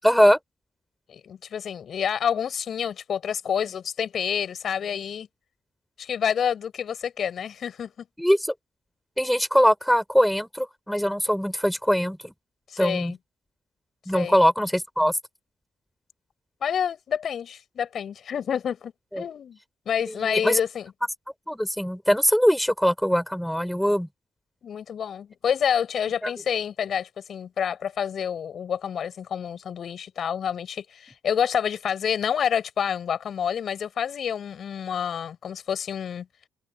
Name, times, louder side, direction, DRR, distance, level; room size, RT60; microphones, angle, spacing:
voice 1, 0.0-0.4 8.2-8.4 9.2-12.3 12.8-13.1 14.1-15.1 19.1-19.2 20.2-20.6 21.5-24.1 26.2-26.3, equal, ahead, 5.2 m, -22 dB
voice 2, 1.1-5.3 6.0-7.9 12.7-13.2 14.1-14.4 16.6-19.6 19.9-20.9 24.6-36.3, left 8 dB, 55° left, 7.5 m, -28 dB
open air
cardioid pair, 90°, 0 cm